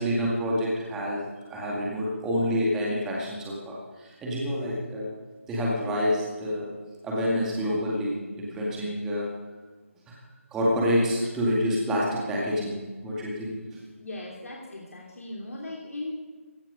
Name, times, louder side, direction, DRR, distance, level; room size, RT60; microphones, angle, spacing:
voice 1, 0.0-5.1 5.5-6.7 7.0-9.3 10.1-10.2 10.5-13.8, equal, 5° right, -4 dB, 2.1 m, -28 dB
voice 2, 14.0-16.1, left 2 dB, 80° left, -2 dB, 3.0 m, -38 dB
16.5 x 11.0 x 5.1 m, 1.4 s
figure-of-eight pair, 170°, 8 cm